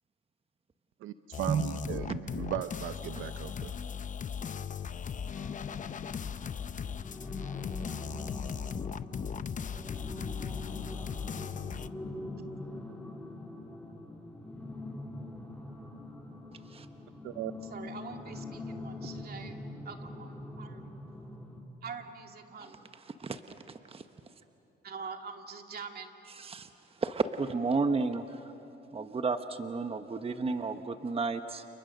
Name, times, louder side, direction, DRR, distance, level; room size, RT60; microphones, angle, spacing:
voice 1, 1.0-3.7 17.2-17.5, right 12 dB, 90° right, 11 dB, 0.7 m, -37 dB
sound 1, 1.3-11.9, left 7 dB, 40° left, 0.7 m, -38 dB
sound 2, 5.3-21.6, left 2 dB, 5° left, 3.8 m, -43 dB
voice 2, 17.6-20.8 21.8-22.8 24.8-26.1, right 5 dB, 50° right, 4 dB, 2.4 m, -44 dB
voice 3, 26.4-26.7 27.0-28.4 28.9-31.7, right 4 dB, 30° right, 8 dB, 1.1 m, -32 dB
29.5 x 29.5 x 6.6 m, 3.0 s
cardioid pair, 90°, 20 cm